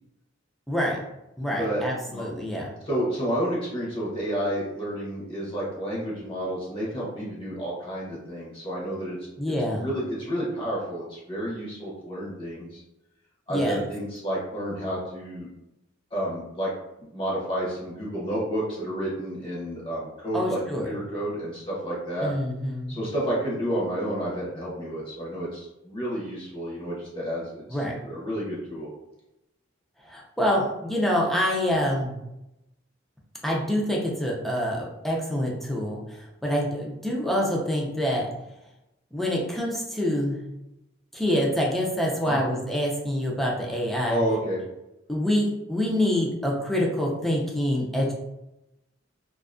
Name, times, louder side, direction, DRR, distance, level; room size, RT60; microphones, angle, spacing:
voice 1, 0.7-1.0 1.4-2.7 9.4-9.9 13.5-13.8 20.3-20.9 22.2-23.0 27.7-27.9 30.1-32.1 33.4-36.0 36.4-38.3 39.1-40.4 41.1-44.2 45.1-48.1, equal, ahead, -3 dB, 0.4 m, -26 dB
voice 2, 1.5-1.8 2.1-2.2 2.8-9.2 9.8-12.8 13.5-15.5 16.1-16.7 17.1-22.3 22.9-28.9 42.2-42.4 44.1-44.6, equal, 25° left, -5 dB, 0.7 m, -30 dB
2.5 x 2.3 x 2.4 m, 0.90 s
head